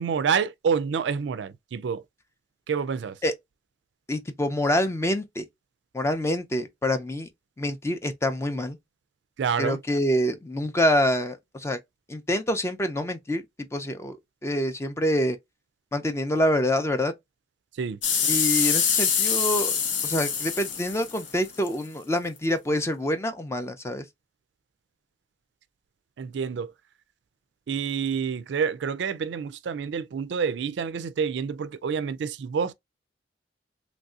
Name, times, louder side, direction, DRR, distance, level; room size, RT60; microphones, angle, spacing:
voice 1, 0.0-2.0 2.7-3.2 9.4-9.8 17.8-18.0 26.2-26.7 27.7-32.7, right 6 dB, 70° right, 0.3 m, -28 dB
voice 2, 4.1-5.4 5.9-7.3 7.6-8.8 9.6-11.8 12.1-13.4 13.7-14.2 14.4-15.4 15.9-17.1 18.3-19.8 20.0-24.0, left 1 dB, 15° left, 0.4 m, -26 dB
sound 1, 18.0-21.7 22.4-22.5, left 7 dB, 85° left, 0.9 m, -25 dB
3.1 x 2.6 x 2.3 m
head